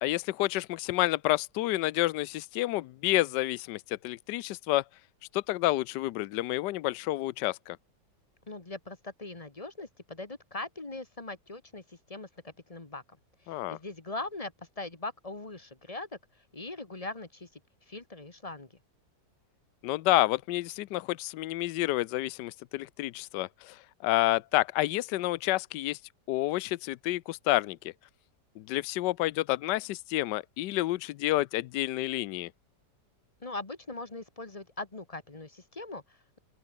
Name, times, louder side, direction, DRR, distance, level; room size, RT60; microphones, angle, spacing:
voice 1, 0.0-4.8 5.3-7.8 13.5-13.8 19.8-26.0 26.3-27.9 28.6-32.5, left 17 dB, 80° left, 1.2 m, -29 dB
voice 2, 8.5-13.0 13.4-16.2 16.5-17.6 17.9-18.7 33.4-36.4, left 2 dB, 20° left, 1.5 m, -41 dB
open air
omnidirectional pair, 1.9 m